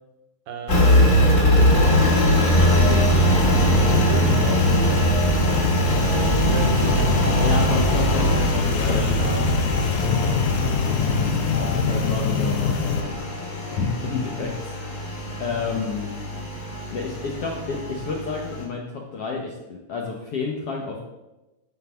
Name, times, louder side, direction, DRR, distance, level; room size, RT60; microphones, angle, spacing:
voice 1, 0.5-1.3 2.1-5.0 6.4-7.6 8.8-9.4, right 5 dB, 90° right, 5 dB, 2.8 m, -32 dB
Engine, 0.7-18.6, equal, 30° left, 2.2 m, -22 dB
sound 1, 2.6-13.0, left 6 dB, 90° left, 2.6 m, -24 dB
voice 2, 7.4-9.2 11.0-13.5 13.7-15.1 15.4-16.1 16.9-21.0, left 4 dB, 65° left, 0 dB, 1.5 m, -30 dB
13.5 x 4.6 x 5.7 m, 1.0 s
omnidirectional pair, 3.9 m